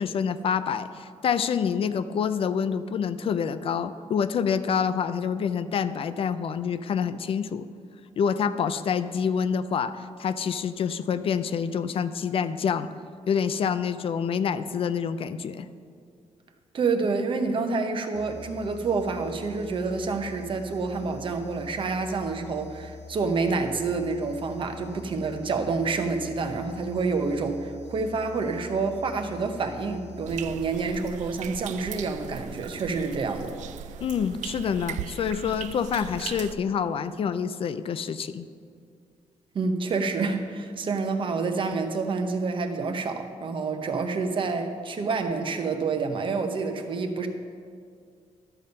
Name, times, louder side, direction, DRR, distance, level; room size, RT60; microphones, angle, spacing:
voice 1, 0.0-7.7 8.2-12.9 13.3-15.7 34.0-38.5, left 7 dB, 50° left, 12 dB, 0.4 m, -27 dB
voice 2, 16.7-33.5 39.5-47.3, right 4 dB, 45° right, 6 dB, 0.9 m, -28 dB
sound 1, 18.1-31.3, left 5 dB, 70° left, 0.8 m, -45 dB
sound 2, 30.2-36.6, right 10 dB, 85° right, 0.4 m, -38 dB
12.0 x 6.9 x 5.3 m, 2.3 s
cardioid pair, 135°, 12 cm